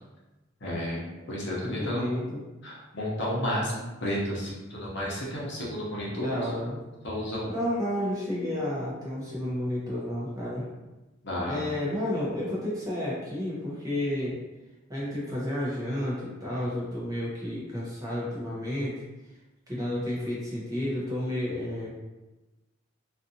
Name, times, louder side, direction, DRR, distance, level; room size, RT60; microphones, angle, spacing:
voice 1, 0.6-2.2 2.6-6.5 7.0-7.5 11.2-11.7, equal, 60° left, -5 dB, 0.8 m, -32 dB
voice 2, 1.6-2.4 6.1-6.8 7.4-10.7 11.5-14.4 14.9-18.9 19.7-21.9, left 1 dB, 15° right, -7 dB, 0.7 m, -31 dB
2.5 x 2.4 x 2.7 m, 1.1 s
head